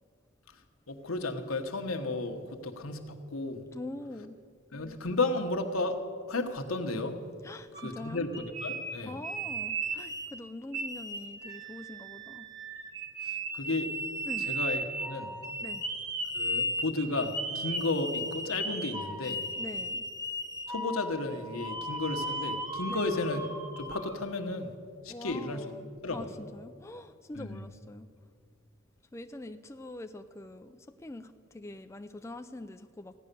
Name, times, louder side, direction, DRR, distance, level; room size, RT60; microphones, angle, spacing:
voice 1, 0.9-3.6 4.7-6.0 6.3-7.2 7.8-9.2 13.2-13.9 14.4-15.3 16.3-19.4 20.7-23.5 23.8-24.7 25.0-25.6 26.0-26.3 27.3-27.7, left 2 dB, 80° left, 5 dB, 1.2 m, -33 dB
voice 2, 3.7-4.4 7.4-8.2 9.1-12.5 14.3-14.5 15.6-15.8 19.6-20.0 22.9-23.1 25.1-25.8 26.1-28.1 29.1-33.1, left 2 dB, 15° left, 8 dB, 0.3 m, -44 dB
sound 1, 7.7-10.4 10.7-24.1, right 1 dB, 20° right, 1.2 m, -36 dB
15.5 x 10.0 x 6.8 m, 2.1 s
head